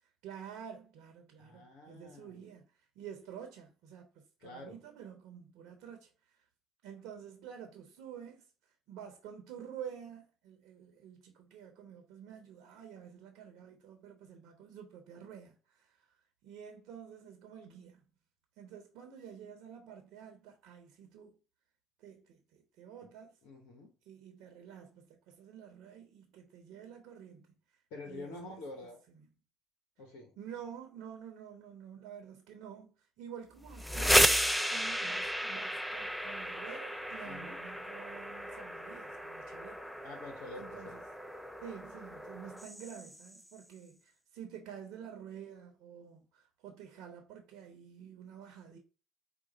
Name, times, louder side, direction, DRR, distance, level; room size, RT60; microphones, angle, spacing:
voice 1, 0.2-6.4 6.8-8.5 8.9-16.1 16.4-18.0 18.6-21.4 22.0-23.4 24.1-27.6 28.0-28.6 29.1-29.3 30.4-39.8 40.6-41.0 41.6-48.8, right 8 dB, 65° right, 0.9 m, -49 dB
voice 2, 1.4-2.5 4.4-4.8 23.4-23.9 27.9-29.0 30.0-30.4 37.2-37.6 40.0-41.0, left 2 dB, 70° left, 1.1 m, -47 dB
sound 1, 33.6-43.4, equal, ahead, 0.5 m, -33 dB
4.9 x 2.5 x 4.1 m
hypercardioid pair, 55°, 0 cm